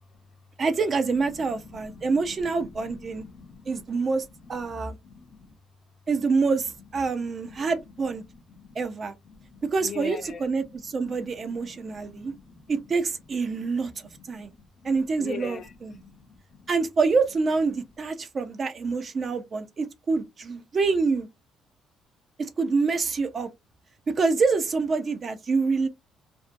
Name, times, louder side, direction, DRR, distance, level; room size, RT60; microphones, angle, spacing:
voice 1, 0.6-3.2 3.7-5.0 6.1-8.2 8.8-9.2 9.7-12.3 12.7-14.5 14.8-16.0 16.7-21.3 22.4-23.5 24.1-25.9, right 4 dB, 30° right, 0.4 m, -26 dB
voice 2, 1.3-3.9 4.4-5.5 7.5-7.6 8.5-8.8 9.3-10.5 11.0-12.6 13.5-13.7 14.0-14.9 15.2-16.7, left 4 dB, 40° left, 0.5 m, -44 dB
2.5 x 2.1 x 2.5 m
cardioid pair, 150°, 0 cm